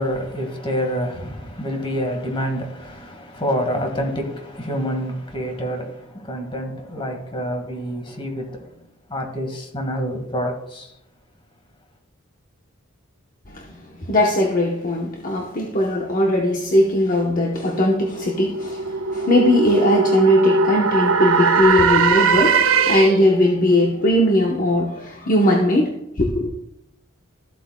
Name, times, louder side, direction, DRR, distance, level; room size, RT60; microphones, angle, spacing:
voice 1, 0.0-10.9, equal, 25° left, 1.8 m, -27 dB
voice 2, 13.5-26.5, left 1 dB, 40° left, 1.0 m, -19 dB
Reversed Howl, 17.2-23.4, right 5 dB, 70° right, 0.7 m, -20 dB
14.0 x 8.1 x 2.3 m
head